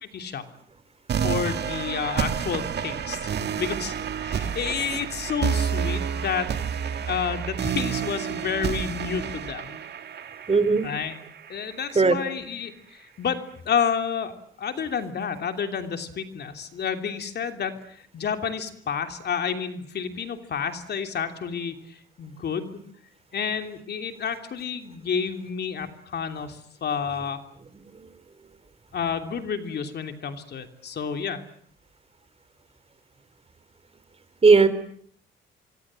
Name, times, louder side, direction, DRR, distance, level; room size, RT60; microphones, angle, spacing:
voice 1, 0.0-0.4 1.2-3.3 3.6-3.9 4.2-6.5 7.0-9.8 10.8-11.2 11.5-14.3 14.6-17.7 18.1-22.8 23.3-27.4 28.9-31.4, left 6 dB, 55° left, 7 dB, 3.0 m, -30 dB
sound 1, 1.1-12.1, right 7 dB, 55° right, 2.1 m, -29 dB
voice 2, 10.5-10.8 12.0-12.2 34.4-34.7, right 4 dB, 30° right, 13 dB, 3.5 m, -16 dB
25.5 x 24.5 x 7.6 m, 0.63 s
cardioid pair, 90°, 20 cm